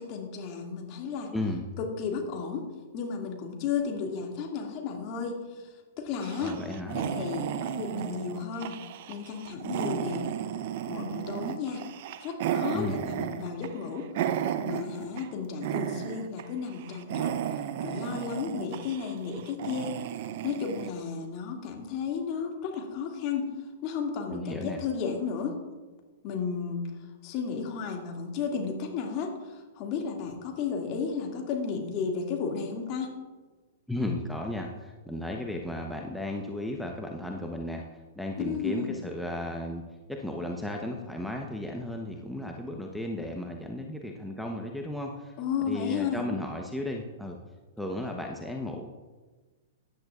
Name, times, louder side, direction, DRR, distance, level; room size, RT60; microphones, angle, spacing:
voice 1, 0.0-1.3 1.8-2.7 2.9-5.7 6.0-6.6 6.9-8.8 9.1-10.3 10.9-11.8 12.2-14.1 14.6-19.9 20.4-23.5 23.8-25.6 26.2-26.9 27.2-33.1 38.4-38.9 45.4-46.2, left 6 dB, 40° left, 1 dB, 2.3 m, -33 dB
voice 2, 1.3-1.8 6.4-7.0 12.7-13.0 24.3-24.8 33.9-37.8 38.2-39.8 40.1-47.4 47.8-48.9, left 1 dB, ahead, 0 dB, 1.0 m, -34 dB
sound 1, 6.2-15.3 15.6-16.4 16.7-20.9, right 10 dB, 55° right, 0.6 m, -34 dB
16.5 x 10.5 x 2.5 m, 1.3 s
hypercardioid pair, 110°, 0 cm